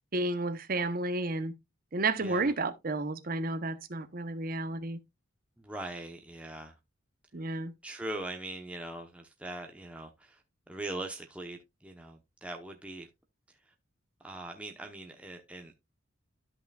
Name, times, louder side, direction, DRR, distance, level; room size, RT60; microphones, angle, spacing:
voice 1, 0.1-1.5 1.9-5.0 7.3-7.7, right 2 dB, 45° right, 0.8 m, -31 dB
voice 2, 2.2-2.5 5.6-6.7 7.5-10.4 10.7-13.1 13.7-13.8 14.2-15.7, right 2 dB, 5° right, 0.8 m, -41 dB
13.0 x 5.7 x 2.3 m
head